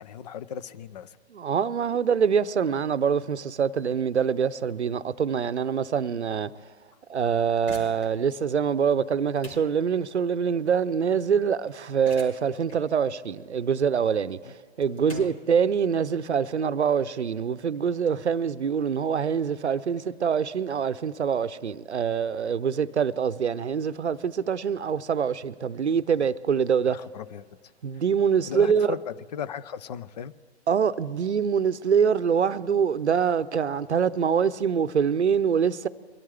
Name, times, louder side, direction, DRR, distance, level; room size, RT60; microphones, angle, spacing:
voice 1, 0.0-1.2 14.5-14.6 15.1-15.3 26.9-27.5 27.9-28.0 28.5-30.3, left 8 dB, 40° left, 0.5 m, -37 dB
voice 2, 1.3-6.5 7.1-27.0 27.8-28.9 30.7-35.9, right 7 dB, 85° right, 0.7 m, -25 dB
sound 1, 7.5-18.1, equal, 80° left, 5.1 m, -49 dB
23.0 x 12.5 x 3.4 m
figure-of-eight pair, 135°, 33 cm